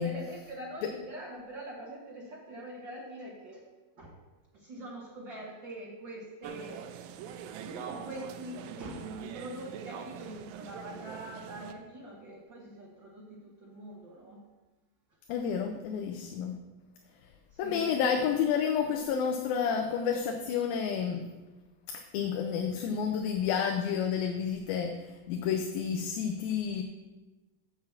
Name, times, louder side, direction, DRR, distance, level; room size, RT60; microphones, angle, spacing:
voice 1, 0.0-3.6 4.0-4.2 4.6-6.8 7.6-14.4 17.6-17.9, right 1 dB, 50° right, -3 dB, 1.4 m, -43 dB
sound 1, 6.4-11.7, right 8 dB, 80° right, 2.2 m, -43 dB
voice 2, 15.3-16.5 17.6-21.3 21.9-25.0 25.3-26.8, left 7 dB, 80° left, 4 dB, 2.5 m, -30 dB
7.2 x 6.8 x 7.3 m, 1.1 s
omnidirectional pair, 4.4 m